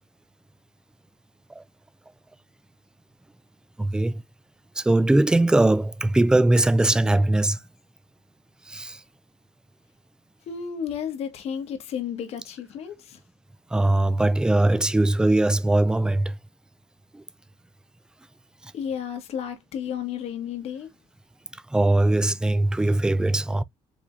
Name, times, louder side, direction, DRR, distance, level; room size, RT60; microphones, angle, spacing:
voice 1, 3.8-4.2 4.8-7.6 8.7-9.0 13.7-16.4 17.1-17.2 18.6-18.7 21.7-23.6, right 2 dB, 5° right, 0.4 m, -21 dB
voice 2, 10.5-13.2 18.7-20.9, left 8 dB, 65° left, 1.3 m, -32 dB
4.9 x 3.4 x 2.5 m
cardioid pair, 115°, 11 cm